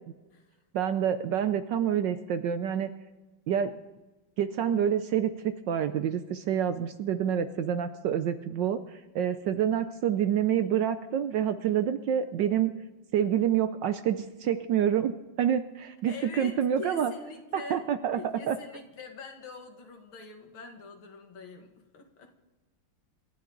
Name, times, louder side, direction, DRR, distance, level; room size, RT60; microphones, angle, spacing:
voice 1, 0.7-2.9 3.5-3.7 4.4-12.7 13.1-17.1 17.5-18.2 18.5-18.6, right 9 dB, 70° right, 10 dB, 1.1 m, -27 dB
voice 2, 16.1-22.4, left 4 dB, 70° left, 4 dB, 2.6 m, -44 dB
27.5 x 11.5 x 3.9 m, 1.2 s
omnidirectional pair, 2.4 m